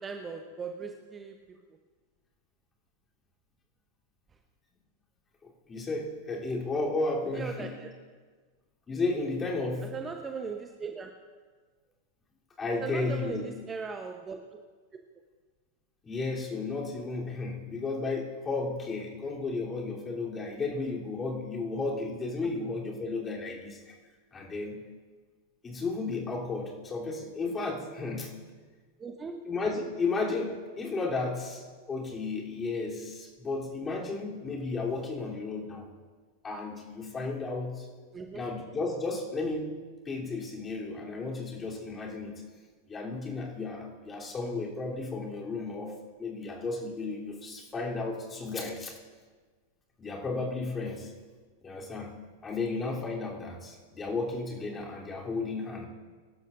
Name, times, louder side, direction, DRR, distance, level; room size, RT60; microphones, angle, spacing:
voice 1, 0.0-1.4 7.3-7.9 9.9-11.1 12.8-14.6 29.0-29.4 38.1-38.5, right 5 dB, 20° right, 5 dB, 0.9 m, -38 dB
voice 2, 5.4-7.8 8.9-9.9 12.6-13.4 16.0-24.0 24.3-24.8 25.6-28.3 29.4-35.8 36.4-37.9 38.3-39.7 40.0-42.4 42.9-48.9 50.0-51.1 51.6-52.1 52.4-55.9, left 3 dB, 20° left, -3 dB, 3.2 m, -33 dB
24.0 x 12.0 x 2.6 m, 1.5 s
figure-of-eight pair, 90°, 0 cm